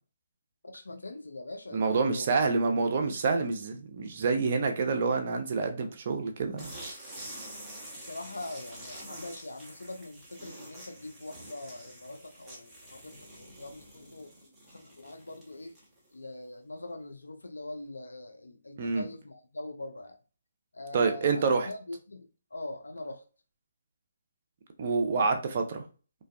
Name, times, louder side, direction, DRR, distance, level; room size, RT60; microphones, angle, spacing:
voice 1, 0.6-2.3 2.7-3.5 8.0-14.3 14.7-15.8 16.1-20.2 20.7-23.2 25.1-25.3, left 2 dB, 80° left, 0.5 m, -43 dB
voice 2, 1.7-6.7 18.8-19.1 20.9-21.7 24.8-25.8, right 4 dB, 45° right, 0.5 m, -27 dB
sound 1, 6.6-16.1, right 1 dB, 10° right, 0.8 m, -47 dB
2.5 x 2.3 x 2.2 m
figure-of-eight pair, 140°, 0 cm